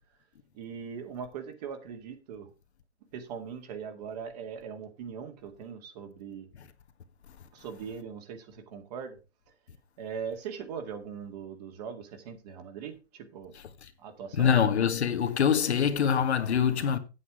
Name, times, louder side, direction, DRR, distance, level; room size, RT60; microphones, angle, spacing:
voice 1, 0.5-2.5 3.1-6.5 7.5-9.2 10.0-13.5 14.0-14.5, right 7 dB, 35° right, 2.1 m, -40 dB
voice 2, 14.3-17.0, left 8 dB, 70° left, 1.6 m, -24 dB
8.4 x 7.9 x 4.9 m
hypercardioid pair, 150°, 34 cm